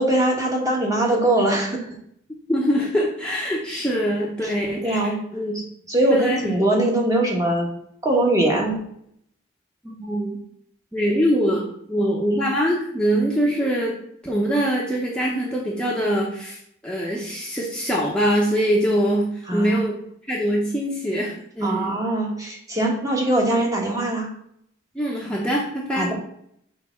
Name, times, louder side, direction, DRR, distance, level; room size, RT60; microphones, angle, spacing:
voice 1, 0.0-1.8 4.4-4.5 4.8-5.1 5.5-7.7 8.0-8.8 19.5-19.8 21.6-24.3 26.0-26.1, right 1 dB, 15° right, -1 dB, 1.4 m, -21 dB
voice 2, 2.5-5.5 6.1-6.4 9.8-10.4 10.9-14.0 14.2-16.6 16.8-20.0 20.3-22.0 24.9-26.1, equal, 5° left, -4 dB, 0.9 m, -23 dB
6.7 x 3.5 x 5.8 m, 0.69 s
head